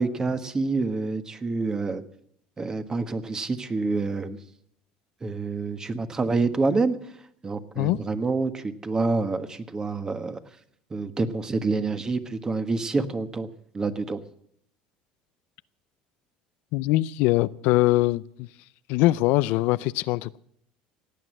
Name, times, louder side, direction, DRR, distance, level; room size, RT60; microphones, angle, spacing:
voice 1, 0.0-2.0 2.6-4.4 5.2-7.1 7.4-10.4 10.9-13.5 13.7-14.2, right 3 dB, 25° right, 1.4 m, -27 dB
voice 2, 16.7-18.5 18.9-20.4, left 18 dB, 75° left, 0.5 m, -22 dB
17.0 x 9.2 x 7.7 m
supercardioid pair, 105°, 3 cm